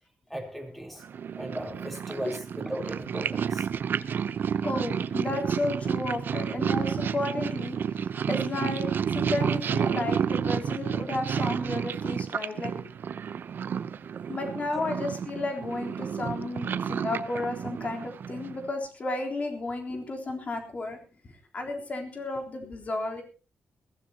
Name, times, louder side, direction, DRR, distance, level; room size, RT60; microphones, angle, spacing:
voice 1, 0.3-1.0 1.4-3.7, right 1 dB, ahead, 4 dB, 3.7 m, -37 dB
Purr, 1.0-18.7, right 7 dB, 65° right, 0.7 m, -30 dB
voice 2, 4.6-12.7 14.3-21.0 21.5-23.2, left 2 dB, 40° left, 3 dB, 3.7 m, -33 dB
21.5 x 16.0 x 2.9 m, 0.33 s
wide cardioid pair, 130°, 4 cm